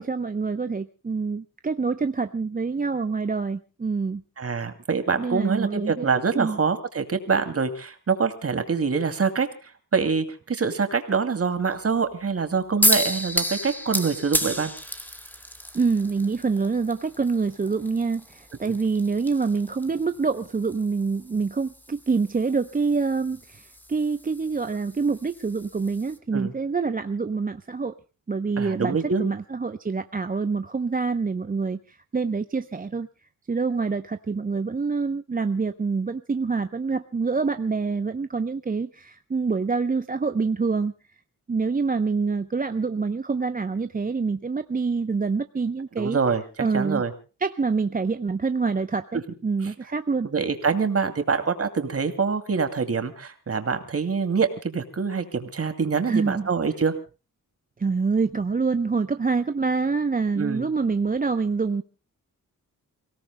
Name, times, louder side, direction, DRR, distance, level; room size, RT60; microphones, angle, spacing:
voice 1, 0.0-4.2 5.2-6.6 15.7-27.9 28.3-33.1 33.5-40.9 41.5-46.2 46.6-47.0 47.4-50.3 56.1-56.5 57.8-61.8, right 4 dB, 25° right, 9 dB, 0.7 m, -26 dB
voice 2, 4.4-14.7 18.7-18.8 26.3-26.5 28.6-29.2 46.0-46.4 46.7-47.1 50.2-56.9 60.4-60.7, right 5 dB, 45° right, 7 dB, 2.5 m, -25 dB
sound 1, 12.8-26.2, equal, 5° left, 2.1 m, -32 dB
30.0 x 17.5 x 2.2 m, 0.35 s
wide cardioid pair, 125°, 33 cm